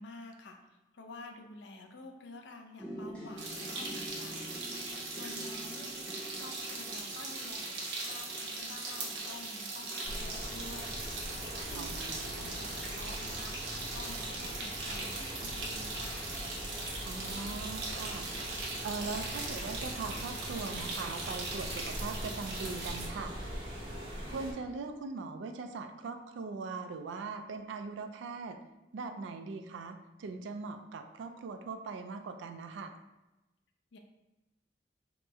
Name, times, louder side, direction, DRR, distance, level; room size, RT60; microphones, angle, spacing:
voice 1, 0.0-11.9 12.3-16.3 33.9-34.0, left 2 dB, 80° left, 3 dB, 0.4 m, -50 dB
sound 1, 2.8-14.7 15.3-15.8 16.2-16.4, right 1 dB, 5° left, 0.6 m, -49 dB
sound 2, 3.4-23.1, right 3 dB, 75° right, 0.7 m, -40 dB
sound 3, 10.0-24.5, equal, 30° right, 0.7 m, -42 dB
voice 2, 11.7-12.6 17.0-23.3 24.3-28.6 28.9-32.9, right 4 dB, 90° right, 7 dB, 0.3 m, -41 dB
3.0 x 2.0 x 3.4 m, 1.0 s
head